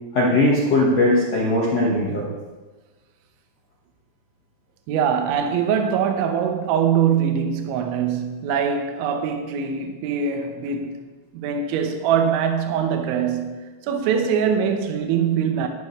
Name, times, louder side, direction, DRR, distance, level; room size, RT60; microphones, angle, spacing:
voice 1, 0.1-2.3, left 1 dB, 75° left, 1.4 m, -19 dB
voice 2, 4.9-10.9 11.3-15.7, right 7 dB, 75° right, 3.2 m, -23 dB
14.0 x 11.0 x 3.2 m
omnidirectional pair, 5.7 m